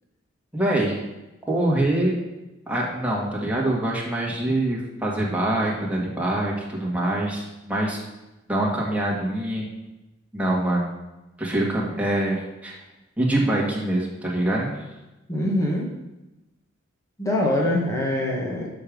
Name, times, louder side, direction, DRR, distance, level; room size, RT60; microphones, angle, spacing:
voice 1, 0.5-0.9 1.5-2.2 2.7-8.0 8.5-9.7 10.3-10.9 11.4-12.8 13.2-14.9, right 1 dB, 5° right, -4 dB, 1.7 m, -24 dB
voice 2, 15.3-15.9 17.2-18.7, left 1 dB, 15° left, -2 dB, 1.4 m, -24 dB
6.9 x 5.2 x 6.1 m, 1.0 s
head